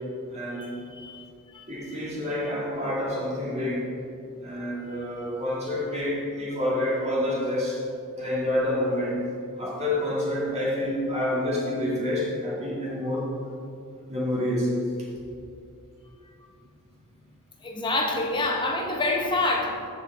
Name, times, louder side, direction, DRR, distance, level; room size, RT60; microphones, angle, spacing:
voice 1, 0.3-0.8 1.7-3.9 4.4-7.8 8.1-9.2 9.6-13.3 14.1-14.9, left 1 dB, 30° right, -5 dB, 2.0 m, -28 dB
voice 2, 0.9-1.6 17.6-19.9, left 2 dB, 20° left, 1 dB, 0.9 m, -27 dB
13.5 x 4.4 x 4.0 m, 2.6 s
head